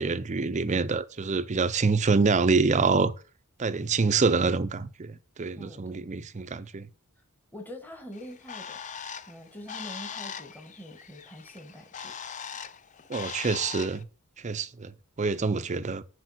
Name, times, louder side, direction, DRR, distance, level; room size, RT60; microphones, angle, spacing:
voice 1, 0.0-3.1 3.6-6.9 13.1-14.0 14.4-14.9 15.2-16.0, right 4 dB, 30° right, 0.5 m, -26 dB
voice 2, 5.6-6.0 7.5-8.8 9.3-12.1, equal, 10° left, 1.2 m, -44 dB
Bird, 8.1-14.0, left 7 dB, 35° left, 0.5 m, -40 dB
6.6 x 4.7 x 6.2 m
head